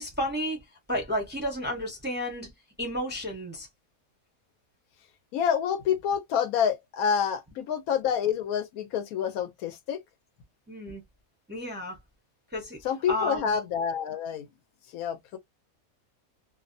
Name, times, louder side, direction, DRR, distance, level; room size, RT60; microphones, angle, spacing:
voice 1, 0.0-2.5 2.8-3.7 10.7-11.0 11.5-12.0 12.5-12.8 13.1-13.6, equal, 10° right, 0.5 m, -32 dB
voice 2, 5.3-10.0 12.8-14.5 14.9-15.4, left 8 dB, 85° left, 1.1 m, -28 dB
2.6 x 2.1 x 2.5 m
omnidirectional pair, 1.5 m